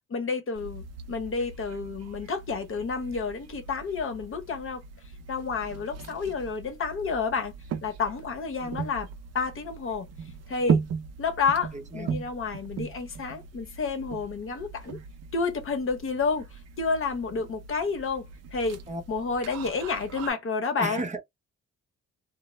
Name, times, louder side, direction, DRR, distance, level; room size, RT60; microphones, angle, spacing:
voice 1, 0.1-4.8 5.3-7.5 7.8-9.1 9.3-10.1 10.5-10.8 11.2-15.0 15.3-16.5 16.8-18.3 18.5-18.8 19.1-21.0, left 4 dB, 45° left, 0.9 m, -30 dB
sound 1, 0.5-20.3, right 6 dB, 55° right, 0.5 m, -37 dB
voice 2, 11.7-12.3 18.9-19.0 20.8-21.2, right 2 dB, 25° right, 0.7 m, -34 dB
2.0 x 2.0 x 3.0 m
cardioid pair, 90°, 30 cm